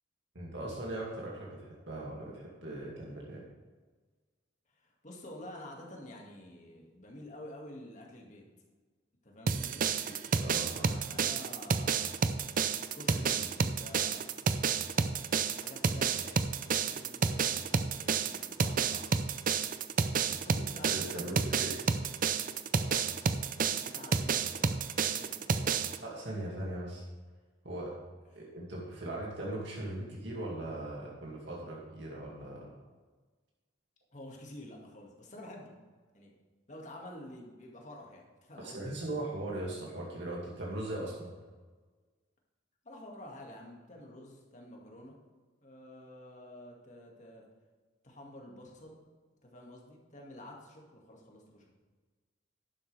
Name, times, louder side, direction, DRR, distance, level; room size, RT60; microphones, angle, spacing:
voice 1, 0.3-3.4 10.4-10.9 20.8-21.9 26.0-27.0 27.6-28.0 28.4-32.7 38.6-41.3, right 1 dB, 70° right, -4 dB, 2.3 m, -39 dB
voice 2, 4.7-8.4 9.2-9.9 10.7-12.1 12.9-14.4 15.5-19.1 20.3-21.5 22.8-23.1 23.5-25.9 34.1-35.7 36.1-36.3 36.7-38.9 42.8-45.2 45.6-47.5 48.0-49.0 49.4-51.7, left 1 dB, 40° left, -1 dB, 2.1 m, -49 dB
sound 1, 9.5-26.0, right 5 dB, 45° right, 0.5 m, -30 dB
11.0 x 11.0 x 3.4 m, 1.4 s
head